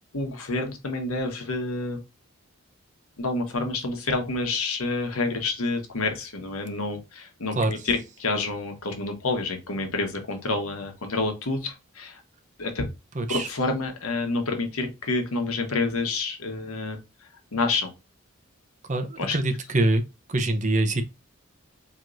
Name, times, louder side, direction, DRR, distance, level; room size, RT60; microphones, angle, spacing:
voice 1, 0.1-2.0 3.2-12.2 12.6-12.9 13.3-17.0 17.5-17.9 19.2-19.4, left 3 dB, 85° left, 1.1 m, -28 dB
voice 2, 13.2-13.5 18.9-20.0 20.3-21.0, right 2 dB, 35° right, 0.6 m, -24 dB
4.6 x 2.9 x 2.5 m
head